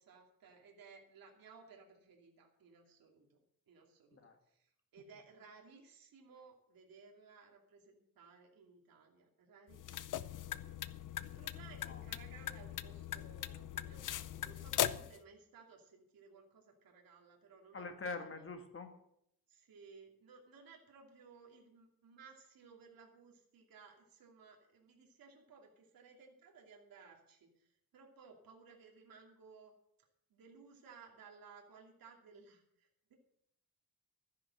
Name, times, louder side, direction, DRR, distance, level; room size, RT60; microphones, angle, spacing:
voice 1, 0.0-3.4 3.7-4.2 4.5-10.7 11.2-17.9 19.5-29.7 30.3-33.1, right 5 dB, 70° right, 0 dB, 2.7 m, -59 dB
sound 1, 9.7-15.2, left 11 dB, 60° left, 0.6 m, -40 dB
voice 2, 17.7-18.9, left 3 dB, 35° left, 6 dB, 1.6 m, -44 dB
13.5 x 10.5 x 6.3 m, 0.74 s
wide cardioid pair, 165°, 36 cm